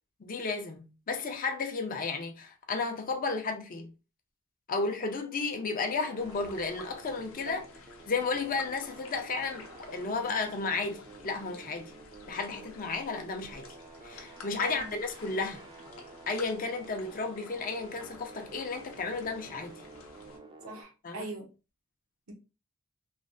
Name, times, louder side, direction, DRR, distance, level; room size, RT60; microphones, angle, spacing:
voice 1, 0.2-3.9 4.7-7.6 8.1-9.7 9.9-11.9 12.3-13.7 14.0-15.6 16.3-19.8 21.0-21.3, left 4 dB, 45° left, 0.5 m, -33 dB
sound 1, 5.3-20.8, right 3 dB, 25° right, 0.4 m, -50 dB
sound 2, 6.2-20.4, left 4 dB, 85° left, 0.6 m, -51 dB
voice 2, 14.6-14.9 20.6-21.5 22.3-22.4, right 2 dB, 85° right, 0.8 m, -40 dB
3.1 x 2.0 x 2.5 m
head